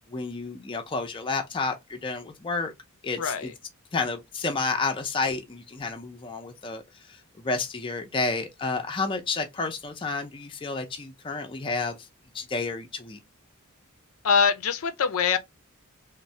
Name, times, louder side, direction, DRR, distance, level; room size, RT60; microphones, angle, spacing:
voice 1, 0.1-2.7 3.0-3.5 3.9-12.1 12.3-13.2, left 3 dB, 25° left, 0.5 m, -30 dB
voice 2, 3.2-3.5 14.2-15.4, left 6 dB, 75° left, 0.5 m, -23 dB
3.1 x 2.1 x 2.7 m
head